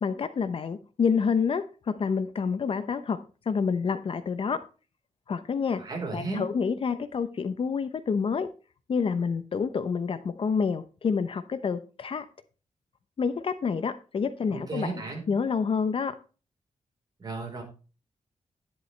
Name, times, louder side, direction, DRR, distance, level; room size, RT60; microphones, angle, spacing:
voice 1, 0.0-3.2 3.5-4.6 5.3-5.8 6.1-8.5 8.9-12.2 13.2-14.9 15.3-16.1, left 5 dB, 45° left, 11 dB, 0.8 m, -28 dB
voice 2, 5.8-6.5 14.5-15.2 17.2-17.6, right 3 dB, 35° right, 1 dB, 4.1 m, -34 dB
11.0 x 10.5 x 3.3 m, 0.34 s
wide cardioid pair, 165°, 12 cm